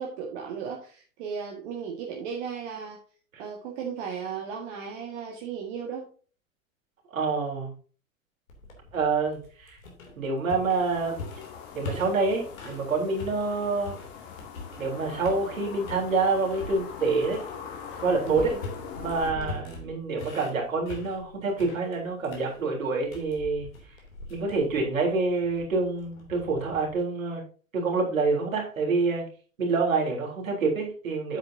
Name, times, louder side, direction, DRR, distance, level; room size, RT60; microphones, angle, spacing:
voice 1, 0.0-3.0 3.4-6.1 7.4-7.5 18.4-18.6 19.4-19.5, right 6 dB, 55° right, 0 dB, 1.8 m, -36 dB
voice 2, 7.1-7.7 8.9-9.8 10.2-11.4 11.7-14.0 14.8-17.4 18.0-18.5 18.9-23.7 24.3-27.4 27.7-29.3 29.6-31.4, right 4 dB, 75° right, -1 dB, 3.9 m, -27 dB
sound 1, 8.5-12.9 13.2-14.9 15.2-16.1 16.5-27.0, left 2 dB, 75° left, 3.2 m, -42 dB
sound 2, 10.5-19.3, left 7 dB, 45° left, 2.6 m, -42 dB
9.1 x 8.0 x 2.8 m, 0.39 s
figure-of-eight pair, 90°, 41 cm